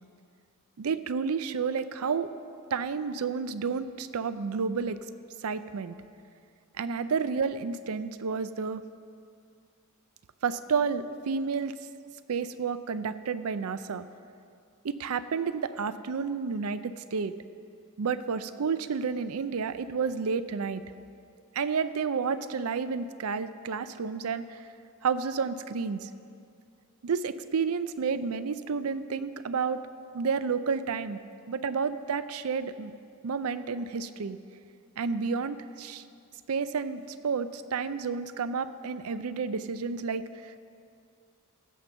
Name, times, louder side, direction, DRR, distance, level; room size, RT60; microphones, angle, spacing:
voice 1, 0.8-2.3 2.7-5.0 5.4-6.0 6.8-8.8 10.4-11.7 12.3-14.0 14.8-17.3 18.0-20.8 21.5-24.6 25.0-26.1 27.0-29.8 30.1-31.2 31.5-32.9 33.2-34.4 35.0-36.0 36.5-40.5, right 5 dB, 80° right, 13 dB, 0.5 m, -30 dB
16.0 x 6.7 x 5.2 m, 2.4 s
head